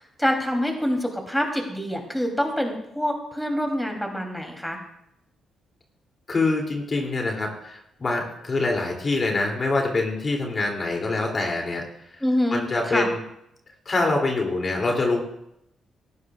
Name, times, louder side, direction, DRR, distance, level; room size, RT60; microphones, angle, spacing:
voice 1, 0.2-4.8 12.2-13.1, equal, 5° left, 2 dB, 3.0 m, -26 dB
voice 2, 6.3-11.8 12.5-13.2 13.9-15.2, left 3 dB, 45° left, 1 dB, 2.7 m, -25 dB
17.5 x 14.0 x 2.4 m, 0.79 s
supercardioid pair, 60°, 0 cm